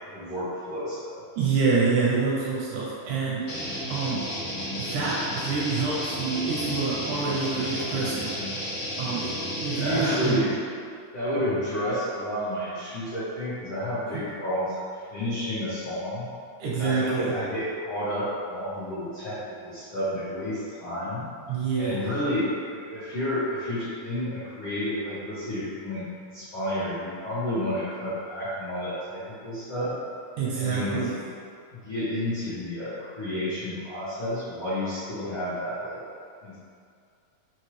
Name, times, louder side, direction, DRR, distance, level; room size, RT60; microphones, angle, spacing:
voice 1, 0.1-1.2 1.7-1.8 9.7-10.6 11.1-14.8 15.1-16.3 16.7-21.3 21.8-29.9 30.5-31.3 31.7-36.0 36.4-36.6, equal, 80° left, -12 dB, 1.1 m, -30 dB
voice 2, 1.4-4.3 4.8-8.3 9.0-10.5 14.1-14.2 16.6-17.3 21.5-22.1 30.4-31.1, right 4 dB, 80° right, -5 dB, 1.8 m, -27 dB
sound 1, 3.5-10.3, equal, 65° left, 2.2 m, -32 dB
5.3 x 3.0 x 3.1 m, 2.3 s
omnidirectional pair, 3.9 m